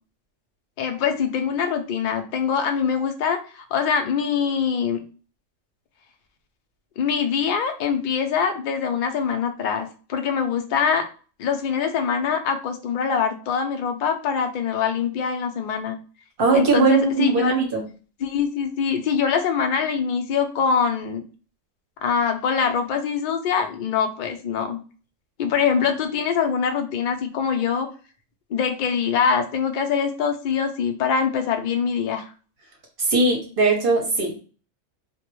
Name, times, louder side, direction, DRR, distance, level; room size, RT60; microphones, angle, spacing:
voice 1, 0.8-5.0 7.0-11.1 11.4-16.0 16.5-17.5 18.2-21.2 22.0-24.8 25.4-27.9 28.5-32.3, left 6 dB, 75° left, 5 dB, 0.4 m, -23 dB
voice 2, 16.4-17.8 33.0-34.4, right 3 dB, 55° right, 2 dB, 0.7 m, -20 dB
2.2 x 2.0 x 2.9 m, 0.37 s
omnidirectional pair, 1.3 m